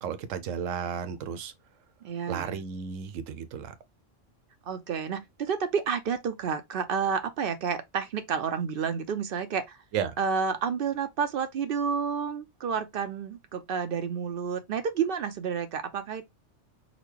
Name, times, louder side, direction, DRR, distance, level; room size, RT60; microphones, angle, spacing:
voice 1, 0.0-1.5 2.3-3.7 9.9-10.1, right 7 dB, 85° right, 1.0 m, -33 dB
voice 2, 2.0-2.6 4.7-9.8 10.2-16.3, right 6 dB, 60° right, 0.6 m, -30 dB
3.9 x 2.2 x 3.1 m
omnidirectional pair, 1.3 m